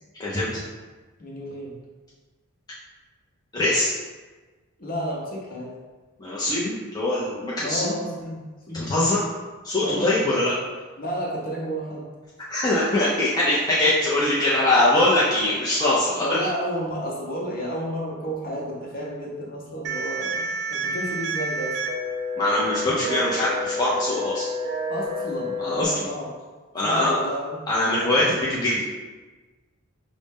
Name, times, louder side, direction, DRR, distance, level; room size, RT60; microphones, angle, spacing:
voice 1, 1.2-1.8 4.8-5.7 7.6-9.1 9.8-10.2 11.0-12.1 15.4-15.6 16.2-21.8 24.9-26.3 26.8-27.6, equal, 40° left, -3 dB, 0.8 m, -31 dB
voice 2, 3.5-3.9 6.2-7.9 8.7-9.2 9.6-10.5 12.5-16.5 22.4-24.5 25.6-26.1 26.7-27.2 27.7-28.8, left 1 dB, 15° left, -8 dB, 0.4 m, -22 dB
sound 1, 19.8-25.8, equal, 50° right, 0.3 m, -29 dB
5.0 x 2.1 x 3.5 m, 1.3 s
head